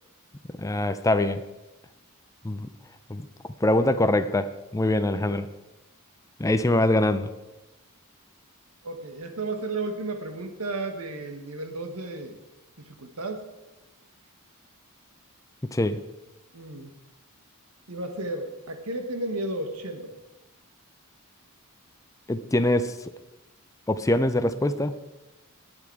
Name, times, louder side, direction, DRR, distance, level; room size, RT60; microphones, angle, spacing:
voice 1, 0.6-1.4 2.4-2.7 3.1-3.2 3.6-5.4 6.4-7.3 15.7-16.0 22.3-22.9 23.9-25.0, left 1 dB, 15° left, 10 dB, 0.6 m, -23 dB
voice 2, 8.8-12.4 12.8-13.5 16.5-16.9 17.9-20.2, right 2 dB, 80° right, 6 dB, 1.7 m, -33 dB
19.0 x 7.2 x 4.7 m, 1.0 s
head